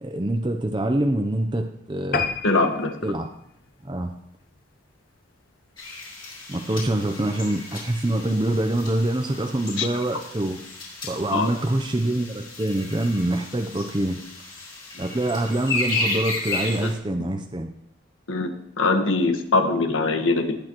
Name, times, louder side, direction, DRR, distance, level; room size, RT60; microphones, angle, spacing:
voice 1, 0.0-2.3 3.0-3.3 3.8-4.1 6.5-10.6 11.0-14.2 15.0-17.7, right 1 dB, 25° right, 4 dB, 0.6 m, -25 dB
sound 1, 2.1-4.9 5.4-5.6 6.0-6.1 6.4-6.5 6.7-6.8, left 4 dB, 45° left, 0.7 m, -31 dB
voice 2, 2.4-3.1 9.8-9.9 11.3-11.5 18.3-20.6, left 3 dB, 85° left, 6 dB, 1.4 m, -22 dB
Gallant Bluebirds, 5.8-16.9, left 2 dB, 25° left, 3.4 m, -34 dB
18.5 x 8.8 x 3.0 m, 0.73 s
head